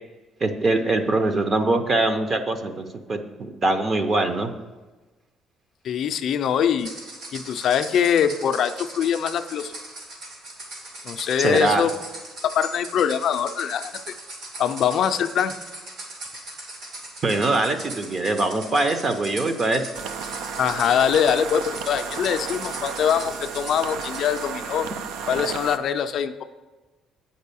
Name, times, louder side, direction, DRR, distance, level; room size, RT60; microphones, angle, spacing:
voice 1, 0.4-4.5 11.4-11.8 17.2-19.9, right 2 dB, 30° right, 8 dB, 0.6 m, -23 dB
voice 2, 5.8-6.9 7.3-9.7 11.0-11.9 12.4-13.9 14.6-15.5 20.6-24.9 25.3-26.4, left 8 dB, 50° left, 9 dB, 0.4 m, -23 dB
sound 1, 6.8-24.4, right 1 dB, 70° right, 2.4 m, -39 dB
sound 2, 19.9-25.8, right 6 dB, 90° right, 0.5 m, -33 dB
8.9 x 5.4 x 6.9 m, 1.2 s
cardioid pair, 175°, 0 cm